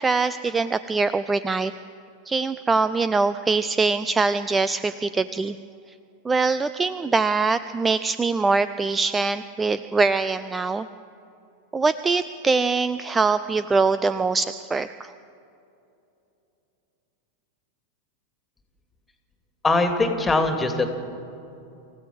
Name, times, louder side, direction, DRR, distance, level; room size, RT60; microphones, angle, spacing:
voice 1, 0.0-1.7 2.3-5.6 6.2-10.9 11.7-15.1, right 4 dB, 15° right, 14 dB, 0.5 m, -23 dB
voice 2, 19.6-20.9, left 3 dB, 10° left, 6 dB, 2.5 m, -21 dB
26.0 x 15.5 x 7.6 m, 2.7 s
figure-of-eight pair, 90°, 0 cm